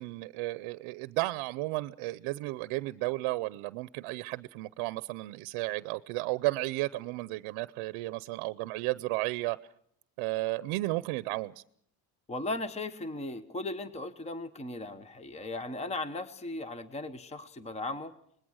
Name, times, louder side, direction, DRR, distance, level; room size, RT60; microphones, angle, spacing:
voice 1, 0.0-9.6 10.2-11.5, right 20 dB, 75° right, 0.8 m, -33 dB
voice 2, 12.3-18.1, left 2 dB, 15° left, 1.0 m, -37 dB
25.5 x 20.5 x 6.3 m
cardioid pair, 140°, 49 cm